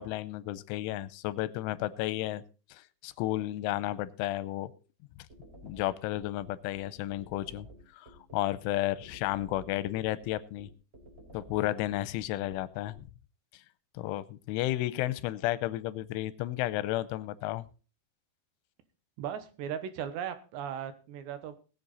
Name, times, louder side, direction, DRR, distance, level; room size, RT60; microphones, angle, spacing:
voice 1, 0.0-2.4 2.7-4.7 5.6-7.7 7.9-10.7 11.3-13.0 13.9-17.7, left 15 dB, 85° left, 17 dB, 3.2 m, -32 dB
sound 1, 5.3-13.0, right 1 dB, 15° right, 3.8 m, -52 dB
voice 2, 19.2-21.6, right 9 dB, 75° right, 11 dB, 3.2 m, -37 dB
20.0 x 7.8 x 4.1 m, 0.35 s
omnidirectional pair, 5.5 m